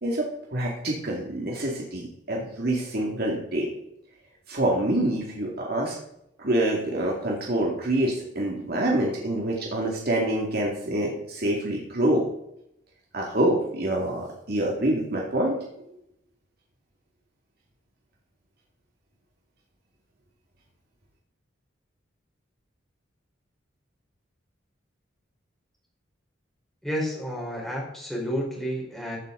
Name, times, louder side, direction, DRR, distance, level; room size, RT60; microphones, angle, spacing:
voice 1, 0.0-3.7 4.5-5.9 6.4-12.2 13.1-15.6, right 1 dB, 55° right, -2 dB, 2.4 m, -26 dB
voice 2, 26.8-29.2, equal, ahead, -4 dB, 4.4 m, -30 dB
15.0 x 8.8 x 4.0 m, 0.77 s
head